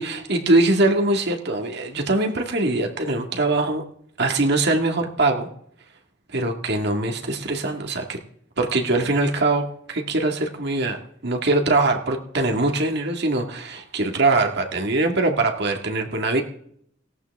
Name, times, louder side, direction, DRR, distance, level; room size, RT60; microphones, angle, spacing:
voice 1, 0.0-3.8 4.2-5.5 6.3-8.2 8.6-11.0 11.2-16.4, right 2 dB, 55° right, 3 dB, 1.9 m, -22 dB
18.5 x 16.5 x 3.5 m, 0.67 s
head